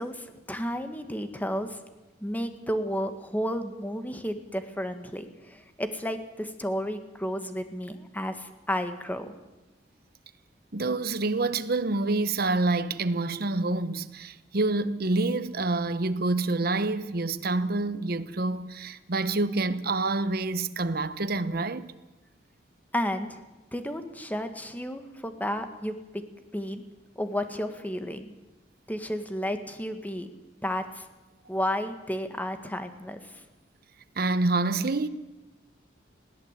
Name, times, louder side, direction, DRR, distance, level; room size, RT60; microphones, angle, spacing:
voice 1, 0.0-1.8 2.2-9.3 22.9-23.4 23.7-26.0 26.5-26.8 27.1-28.3 28.9-30.3 30.6-31.1 31.5-33.4, equal, 10° left, 1.7 m, -32 dB
voice 2, 10.7-21.9 34.2-35.1, right 2 dB, 60° right, 1.0 m, -27 dB
21.0 x 16.5 x 8.3 m
head